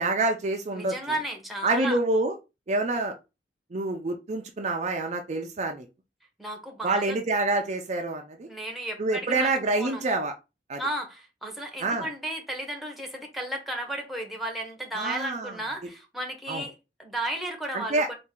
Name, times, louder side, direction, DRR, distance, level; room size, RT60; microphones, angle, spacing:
voice 1, 0.0-0.9 1.6-2.4 2.7-3.1 3.7-5.9 6.8-8.5 9.0-10.3 10.7-10.8 11.8-12.1 15.0-15.6 16.5-16.6 17.7-18.1, right 2 dB, 40° right, 0.5 m, -27 dB
voice 2, 0.7-2.0 6.4-7.2 8.5-10.0 10.8-18.1, right 1 dB, ahead, 1.0 m, -34 dB
4.2 x 2.6 x 3.6 m
head